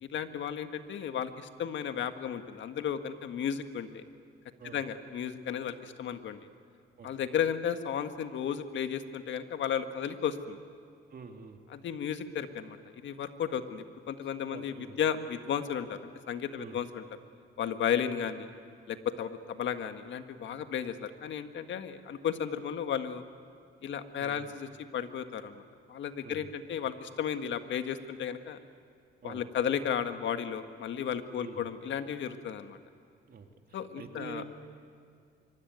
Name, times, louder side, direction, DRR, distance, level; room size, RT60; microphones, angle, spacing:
voice 1, 0.0-4.0 4.7-6.4 7.0-10.6 11.7-17.0 17.6-18.5 18.9-23.2 23.8-24.7 24.9-25.6 25.9-28.6 29.2-32.8 33.7-34.4, left 8 dB, 70° left, 8 dB, 1.6 m, -34 dB
voice 2, 11.1-11.6 14.2-15.0 16.5-16.8 24.2-24.5 26.2-26.5 29.2-29.4 31.4-31.7 33.3-34.5, right 5 dB, 50° right, 4 dB, 2.4 m, -47 dB
25.0 x 24.0 x 9.4 m, 2.3 s
cardioid pair, 90°, 20 cm